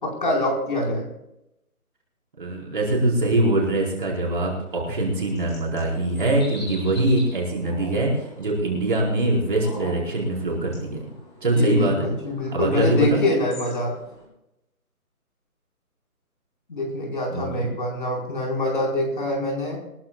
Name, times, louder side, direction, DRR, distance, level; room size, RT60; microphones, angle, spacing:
voice 1, 0.0-1.1 11.5-13.9 16.7-19.8, left 1 dB, 35° left, -1 dB, 4.6 m, -25 dB
voice 2, 2.4-11.0 11.4-12.1 12.5-13.2 17.3-17.7, right 1 dB, 35° right, -3 dB, 4.6 m, -23 dB
sound 1, 4.7-14.2, equal, 15° left, 3.7 m, -43 dB
23.5 x 14.5 x 2.3 m, 0.85 s
hypercardioid pair, 180°, 45 cm